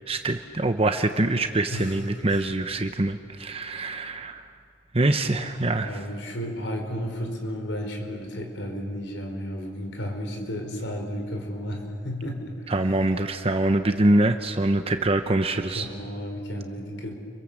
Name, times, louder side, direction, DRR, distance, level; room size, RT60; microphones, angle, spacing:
voice 1, 0.1-4.5 4.9-6.0 12.7-15.9, right 2 dB, 30° right, 7 dB, 0.9 m, -24 dB
voice 2, 5.3-12.7 15.7-17.2, equal, 75° left, 3 dB, 4.9 m, -33 dB
30.0 x 23.5 x 7.5 m, 2.4 s
head